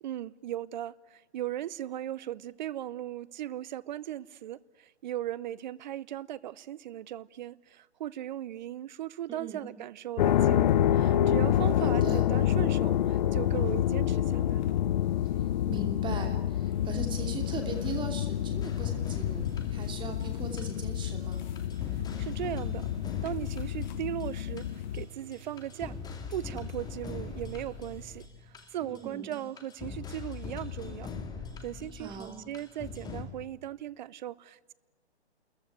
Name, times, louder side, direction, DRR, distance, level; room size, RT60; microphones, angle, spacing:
voice 1, 0.0-14.8 21.9-22.9 23.2-26.0 26.3-31.1 31.6-34.7, right 12 dB, 45° right, 0.7 m, -38 dB
voice 2, 9.3-9.7 11.8-12.3 15.7-21.5 28.9-29.4 31.9-32.4, right 5 dB, 15° right, 2.8 m, -40 dB
sound 1, 10.2-25.0, left 11 dB, 45° left, 0.7 m, -28 dB
sound 2, 16.6-28.3, right 3 dB, 85° right, 3.1 m, -51 dB
sound 3, 18.6-21.0 21.3-25.0 25.3-33.2, left 5 dB, 10° left, 2.1 m, -41 dB
29.5 x 14.5 x 9.6 m
hypercardioid pair, 130°, 33 cm